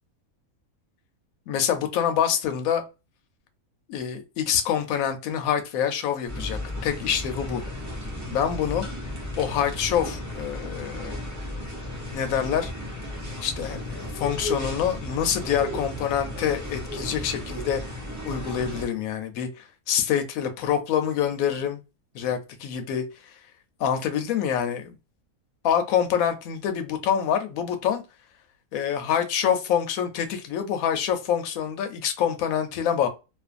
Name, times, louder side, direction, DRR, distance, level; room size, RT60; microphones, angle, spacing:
voice 1, 1.5-2.8 3.9-7.6 8.3-8.9 9.4-11.2 12.1-12.7 13.4-17.8 18.2-21.8 22.1-23.0 23.8-25.0 25.6-28.0 28.7-33.1, left 8 dB, 75° left, 1.0 m, -26 dB
sound 1, 6.3-18.9, left 1 dB, 20° right, 0.6 m, -34 dB
2.5 x 2.5 x 2.3 m
omnidirectional pair, 1.5 m